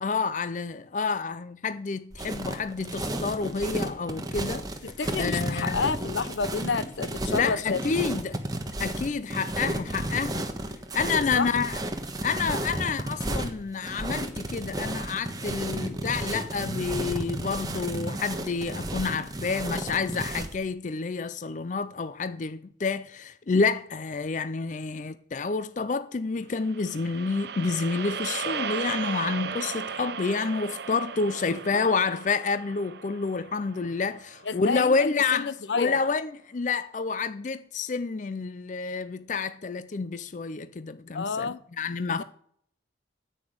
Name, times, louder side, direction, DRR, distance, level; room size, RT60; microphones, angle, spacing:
voice 1, 0.0-4.7 5.2-5.8 7.3-8.4 8.8-10.5 10.9-11.8 12.2-42.2, left 4 dB, 40° left, 0.4 m, -29 dB
sound 1, 2.1-20.6, right 1 dB, 20° right, 1.2 m, -32 dB
voice 2, 4.8-8.2 11.4-11.6 31.4-31.6 34.4-36.0 41.1-41.6 42.2-42.3, left 5 dB, 75° left, 0.7 m, -30 dB
sound 2, 26.6-34.9, right 6 dB, 60° right, 0.6 m, -36 dB
9.7 x 8.8 x 6.4 m
head